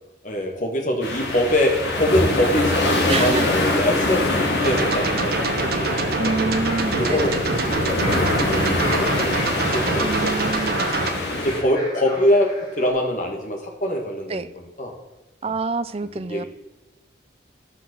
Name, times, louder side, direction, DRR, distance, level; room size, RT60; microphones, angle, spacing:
voice 1, 0.2-6.3 6.8-10.8 11.3-12.5 12.8-14.9 15.4-15.5 16.3-16.5, left 1 dB, 40° left, 2 dB, 1.9 m, -24 dB
sound 1, 1.0-11.6, left 2 dB, 70° left, 2.3 m, -24 dB
sound 2, 2.6-12.9, equal, 20° left, 3.3 m, -38 dB
voice 2, 3.1-3.4 6.2-7.4 10.0-11.0 14.3-14.5 15.4-16.4, right 3 dB, 30° right, 13 dB, 0.4 m, -27 dB
sound 3, 4.6-11.1, right 3 dB, 55° right, 1.0 m, -25 dB
12.5 x 5.9 x 6.3 m, 1.0 s
head